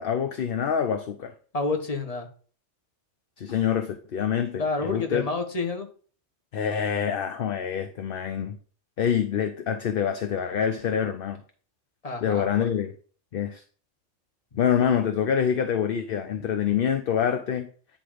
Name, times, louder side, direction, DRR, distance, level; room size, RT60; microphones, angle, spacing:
voice 1, 0.0-1.3 3.4-5.3 6.5-8.6 9.0-11.4 12.2-12.9 13.3-13.6 14.6-17.7, left 8 dB, 60° left, 9 dB, 0.8 m, -26 dB
voice 2, 1.5-2.3 4.6-5.9 12.0-12.7 14.5-14.6, left 3 dB, 30° left, 5 dB, 1.2 m, -29 dB
9.5 x 3.7 x 5.0 m, 0.42 s
omnidirectional pair, 1.2 m